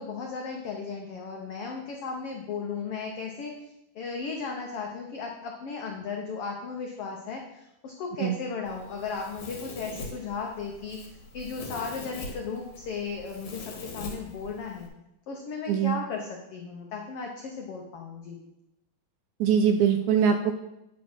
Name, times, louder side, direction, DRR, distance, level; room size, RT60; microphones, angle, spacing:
voice 1, 0.0-14.9 15.3-18.4, left 5 dB, 85° left, 1 dB, 1.3 m, -36 dB
Domestic sounds home sounds, 8.7-14.9, left 2 dB, 65° left, 2.7 m, -42 dB
voice 2, 19.4-20.5, right 7 dB, 80° right, 7 dB, 1.8 m, -22 dB
9.8 x 4.2 x 6.1 m, 0.88 s
omnidirectional pair, 3.8 m